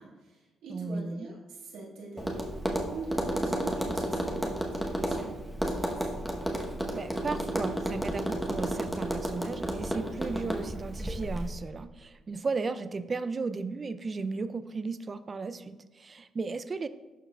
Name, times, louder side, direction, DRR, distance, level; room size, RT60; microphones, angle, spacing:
voice 1, 0.0-6.3, right 3 dB, 90° right, -4 dB, 1.7 m, -44 dB
voice 2, 0.7-1.3 6.9-16.9, right 4 dB, 35° right, 13 dB, 0.3 m, -35 dB
Tap, 2.2-11.5, right 1 dB, ahead, 0.9 m, -32 dB
11.5 x 4.6 x 2.3 m, 1.1 s
cardioid pair, 90°, 0 cm